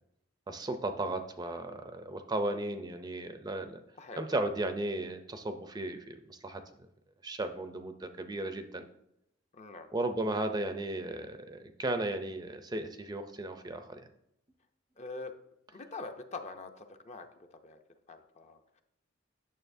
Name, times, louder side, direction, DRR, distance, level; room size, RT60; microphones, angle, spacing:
voice 1, 0.5-3.8 4.2-6.6 7.2-8.8 9.9-14.1, right 2 dB, 20° right, 8 dB, 0.4 m, -35 dB
voice 2, 9.5-9.9 15.0-15.3 15.7-17.8 18.1-18.6, left 3 dB, 35° left, 6 dB, 0.6 m, -44 dB
9.0 x 6.7 x 2.6 m, 0.78 s
head